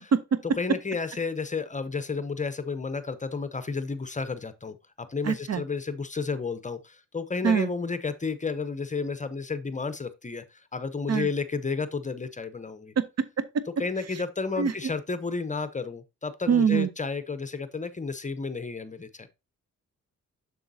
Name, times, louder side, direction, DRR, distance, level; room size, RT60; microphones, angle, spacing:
voice 1, 0.6-12.9 13.8-19.3, left 4 dB, 25° left, 0.7 m, -32 dB
voice 2, 5.3-5.6 7.4-7.7 11.1-11.3 13.0-13.3 14.6-14.7 16.5-16.9, right 7 dB, 50° right, 0.7 m, -23 dB
7.0 x 6.1 x 2.7 m
cardioid pair, 60°, 33 cm